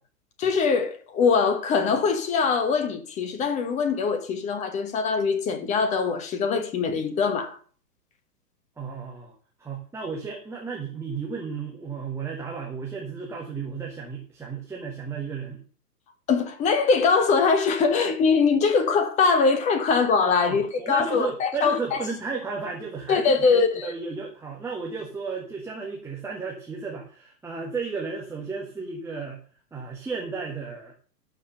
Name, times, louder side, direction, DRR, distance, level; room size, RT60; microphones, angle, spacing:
voice 1, 0.4-7.6 16.3-22.0 23.1-23.9, left 5 dB, 15° left, 1.1 m, -22 dB
voice 2, 8.8-9.3 9.6-15.6 20.4-29.4 29.7-30.9, right 4 dB, 5° right, 1.6 m, -33 dB
12.5 x 5.2 x 6.6 m
figure-of-eight pair, 110°, 48 cm